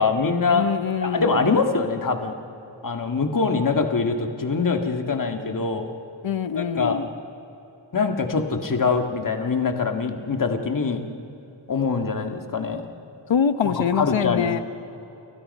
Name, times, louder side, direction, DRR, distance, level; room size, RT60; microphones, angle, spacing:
voice 1, 0.0-0.7 1.0-2.4 2.8-5.9 6.6-7.0 7.9-11.1 11.7-12.9 13.7-14.6, left 4 dB, 45° left, 4 dB, 1.9 m, -23 dB
voice 2, 0.5-1.4 6.2-7.1 13.3-14.6, left 7 dB, 75° left, 10 dB, 1.2 m, -24 dB
29.5 x 29.0 x 5.5 m, 2.9 s
wide cardioid pair, 165°, 46 cm